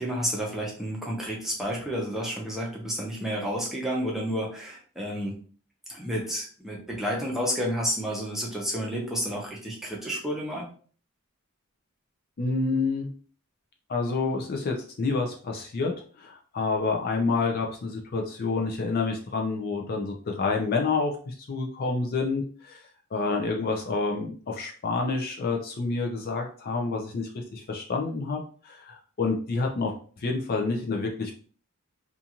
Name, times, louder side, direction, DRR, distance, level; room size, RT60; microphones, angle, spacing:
voice 1, 0.0-5.4 5.9-10.6, equal, ahead, -3 dB, 0.7 m, -30 dB
voice 2, 12.4-13.1 13.9-15.9 16.2-31.3, left 3 dB, 45° left, 2 dB, 0.4 m, -28 dB
2.5 x 2.4 x 2.8 m, 0.42 s
head